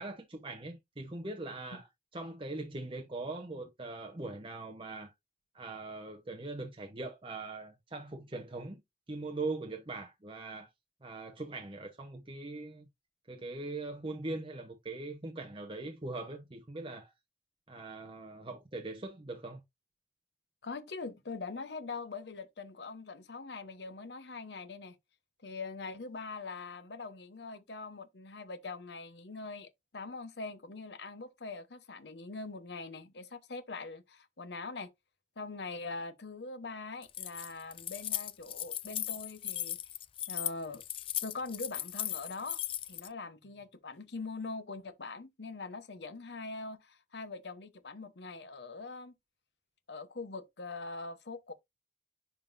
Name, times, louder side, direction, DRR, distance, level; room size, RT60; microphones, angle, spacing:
voice 1, 0.0-1.9 2.1-5.1 5.5-8.8 9.1-10.7 11.0-12.9 13.3-17.1 17.7-19.6, right 2 dB, 30° right, 0.9 m, -41 dB
voice 2, 20.6-25.0 25.4-34.9 35.4-39.8 40.3-40.8 41.2-49.1 49.9-51.5, left 3 dB, 70° left, 0.9 m, -43 dB
Keys jangling, 37.0-43.1, left 12 dB, 30° left, 0.3 m, -37 dB
10.5 x 3.7 x 2.5 m
head